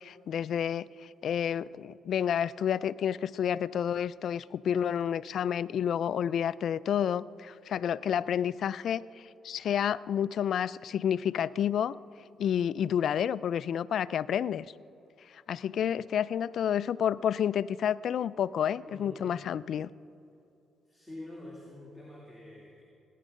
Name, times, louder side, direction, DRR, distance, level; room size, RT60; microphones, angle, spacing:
voice 1, 0.0-12.0 12.4-14.7 15.5-19.9, left 9 dB, 65° left, 18 dB, 0.3 m, -30 dB
voice 2, 18.9-19.3 20.9-22.8, left 1 dB, ahead, -4 dB, 2.6 m, -46 dB
17.5 x 10.0 x 5.3 m, 2.8 s
cardioid pair, 90°, 0 cm